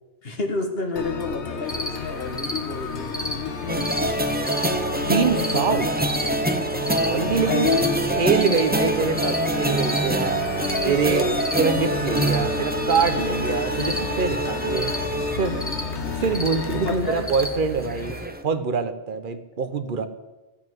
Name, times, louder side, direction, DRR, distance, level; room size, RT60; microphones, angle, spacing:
voice 1, 0.2-4.4 7.1-8.1 16.8-17.3, left 4 dB, 60° left, 4 dB, 1.8 m, -29 dB
sound 1, 1.0-17.0, left 6 dB, 90° left, 1.3 m, -33 dB
sound 2, 1.6-18.3, left 1 dB, 10° left, 1.1 m, -35 dB
sound 3, 3.7-18.4, right 1 dB, 10° right, 0.6 m, -26 dB
voice 2, 5.1-5.9 6.9-7.7 8.2-10.3 10.8-11.3 11.6-14.9 15.4-15.7 16.1-20.1, right 5 dB, 50° right, 9 dB, 1.0 m, -25 dB
13.5 x 5.7 x 9.2 m, 1.1 s
omnidirectional pair, 1.1 m